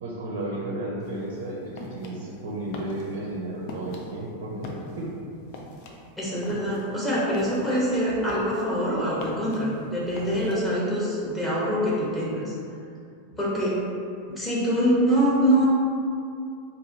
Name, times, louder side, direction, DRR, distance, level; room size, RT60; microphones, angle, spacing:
voice 1, 0.0-5.1, right 1 dB, 55° right, -4 dB, 0.6 m, -33 dB
sound 1, 1.0-10.5, left 2 dB, 45° left, 0.4 m, -42 dB
voice 2, 6.2-12.5 13.4-13.8 14.4-15.7, equal, 15° left, -7 dB, 1.1 m, -24 dB
4.7 x 2.5 x 2.7 m, 2.5 s
figure-of-eight pair, 90°, 0 cm